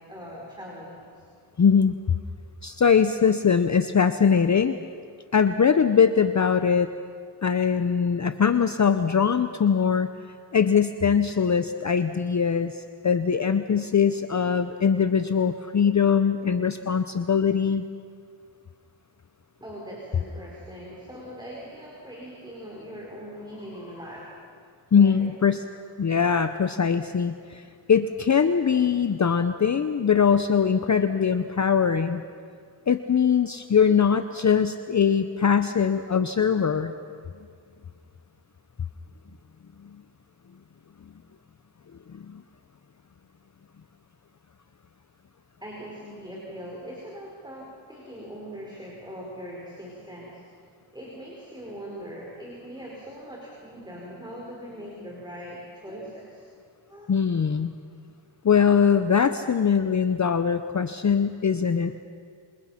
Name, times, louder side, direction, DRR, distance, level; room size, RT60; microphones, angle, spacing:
voice 1, 0.1-1.2 19.6-24.4 24.9-25.3 45.6-50.6 50.9-56.5 56.9-57.1, equal, 10° right, -3 dB, 4.9 m, -41 dB
voice 2, 1.6-1.9 2.6-4.8 5.3-6.9 7.4-10.1 10.5-17.8 24.9-25.6 26.0-32.2 32.9-36.9 39.8-40.0 42.1-42.4 57.1-57.8 58.4-61.9, left 6 dB, 35° left, 10 dB, 0.8 m, -22 dB
27.5 x 27.0 x 5.9 m, 2.2 s
wide cardioid pair, 105°, 49 cm